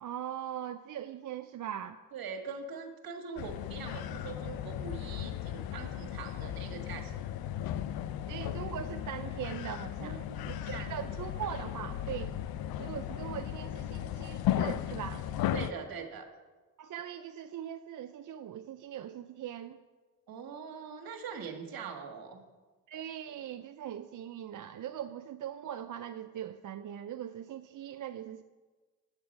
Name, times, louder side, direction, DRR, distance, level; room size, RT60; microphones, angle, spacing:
voice 1, 0.0-2.0 8.3-12.4 12.8-15.3 16.8-19.8 22.9-28.4, right 10 dB, 60° right, 8 dB, 0.5 m, -41 dB
voice 2, 2.1-7.3 10.0-11.0 15.5-16.2 20.3-22.4, right 5 dB, 75° right, 2 dB, 1.5 m, -42 dB
sound 1, 3.4-15.7, left 11 dB, 80° left, 0.5 m, -36 dB
9.7 x 8.0 x 5.3 m, 1.3 s
cardioid pair, 75°, 36 cm